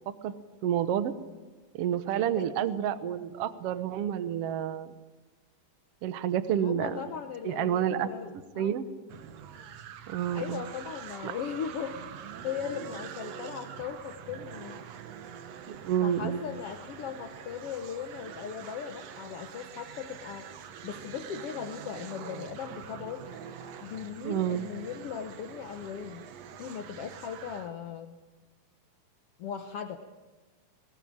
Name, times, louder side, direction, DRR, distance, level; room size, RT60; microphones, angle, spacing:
voice 1, 0.6-1.1 1.7-4.9 6.0-7.0 7.4-8.1 8.6-8.9 10.1-10.6 11.2-11.3 15.7-16.4 24.2-24.7, right 10 dB, 85° right, 12 dB, 1.3 m, -29 dB
voice 2, 6.6-8.8 10.3-12.0 12.4-14.8 16.0-20.5 20.8-23.3 23.8-26.3 26.6-28.2 29.4-30.0, left 7 dB, 85° left, 7 dB, 1.3 m, -38 dB
sound 1, 9.1-27.7, right 8 dB, 65° right, 1.8 m, -45 dB
20.0 x 20.0 x 8.7 m, 1.3 s
omnidirectional pair, 4.2 m